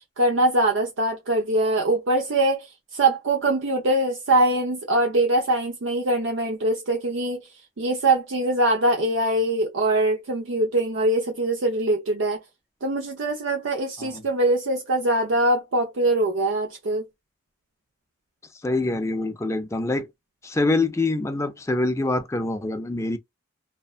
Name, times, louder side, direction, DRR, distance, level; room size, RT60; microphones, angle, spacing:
voice 1, 0.2-7.4 7.8-12.4 12.8-17.0, right 1 dB, 70° right, 0.5 m, -23 dB
voice 2, 18.6-20.1 20.4-23.2, left 2 dB, 15° left, 0.3 m, -25 dB
2.6 x 2.1 x 2.3 m
head